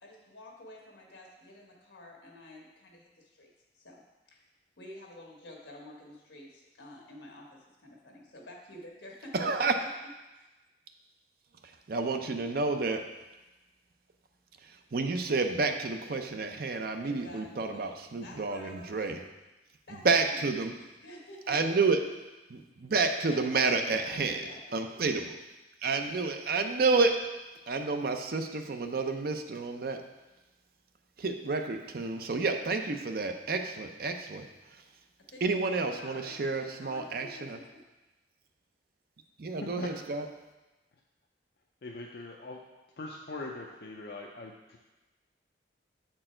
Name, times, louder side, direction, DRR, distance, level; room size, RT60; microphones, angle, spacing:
voice 1, 0.0-3.5 3.7-4.4 4.8-9.7 10.3-10.4 17.0-19.1 19.9-20.4 21.0-21.5 23.3-24.8 35.2-37.8, left 1 dB, 75° left, -1 dB, 1.4 m, -49 dB
voice 2, 9.3-9.8 11.6-13.1 14.6-19.2 20.0-20.7 21.5-22.1 22.5-24.4 24.7-25.3 25.8-27.3 27.7-30.1 31.2-34.5 35.4-37.6 39.4-40.2, right 4 dB, 55° right, 6 dB, 0.5 m, -30 dB
voice 3, 41.8-42.6 43.0-44.8, left 2 dB, 60° left, -1 dB, 0.5 m, -41 dB
7.5 x 4.5 x 4.4 m, 1.1 s
head